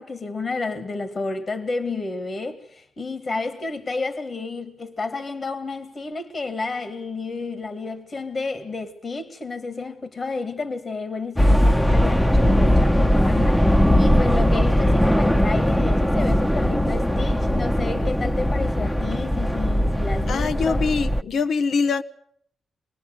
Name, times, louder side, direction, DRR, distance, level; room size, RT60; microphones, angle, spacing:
voice 1, 0.0-20.9, left 3 dB, 50° left, 2.1 m, -31 dB
sound 1, 11.4-21.2, equal, 5° left, 1.0 m, -19 dB
voice 2, 20.3-22.0, left 5 dB, 70° left, 0.9 m, -23 dB
26.0 x 20.0 x 8.0 m
supercardioid pair, 45°, 0 cm